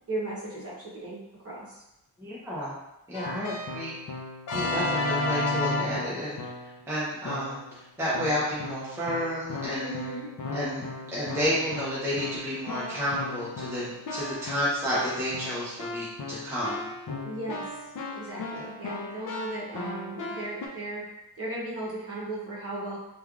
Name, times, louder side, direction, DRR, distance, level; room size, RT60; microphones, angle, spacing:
voice 1, 0.1-1.8 9.8-10.3 17.2-17.6 18.1-21.0 21.4-23.0, right 2 dB, 35° right, -7 dB, 0.9 m, -36 dB
voice 2, 2.2-2.7 3.1-3.9 4.5-6.4 6.9-10.1 10.5-16.9, equal, 5° right, -8 dB, 0.5 m, -31 dB
Keyboard (musical), 3.1-6.8 7.2-7.7 8.1-20.7, left 2 dB, 55° left, 0.5 m, -34 dB
3.1 x 2.3 x 2.3 m, 0.90 s
wide cardioid pair, 165°, 39 cm